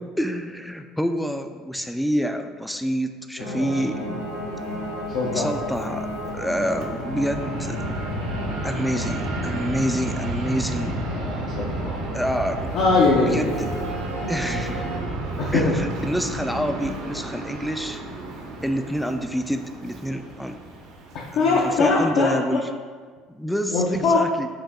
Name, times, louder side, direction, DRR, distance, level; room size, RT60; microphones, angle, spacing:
voice 1, 0.2-4.1 5.3-7.8 8.6-11.0 12.1-12.7 13.2-13.7 14.3-14.9 15.5-18.0 18.6-20.6 21.3-22.6 23.3-24.5, equal, ahead, 7 dB, 0.3 m, -27 dB
sound 1, 3.4-15.0, equal, 90° right, 1.0 m, -34 dB
Fixed-wing aircraft airplane, 4.2-22.0, right 1 dB, 65° right, 0.7 m, -32 dB
voice 2, 5.1-5.5 11.1-12.0 12.7-13.5 15.4-15.8 21.1-22.6 23.7-24.2, left 3 dB, 60° left, -3 dB, 0.6 m, -22 dB
4.7 x 2.6 x 3.7 m, 1.6 s
figure-of-eight pair, 60°, 0 cm